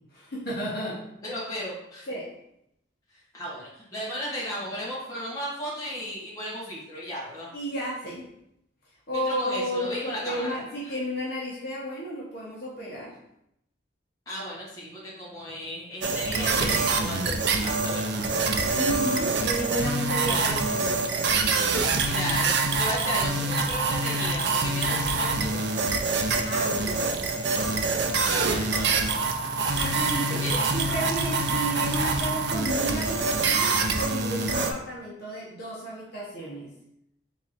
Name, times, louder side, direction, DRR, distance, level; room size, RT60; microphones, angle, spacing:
voice 1, 0.1-1.0 2.1-2.3 7.5-8.2 9.1-13.1 18.7-21.2 26.3-27.2 29.8-36.7, equal, 50° left, -6 dB, 1.0 m, -32 dB
voice 2, 1.2-2.1 3.3-7.5 9.1-10.5 14.3-18.2 18.7-18.8 20.3-20.4 22.0-25.8 28.3-29.5 30.4-30.7, equal, 15° left, -7 dB, 1.3 m, -35 dB
sound 1, 16.0-34.7, right 3 dB, 55° right, 0.4 m, -25 dB
3.6 x 3.1 x 4.1 m, 0.79 s
head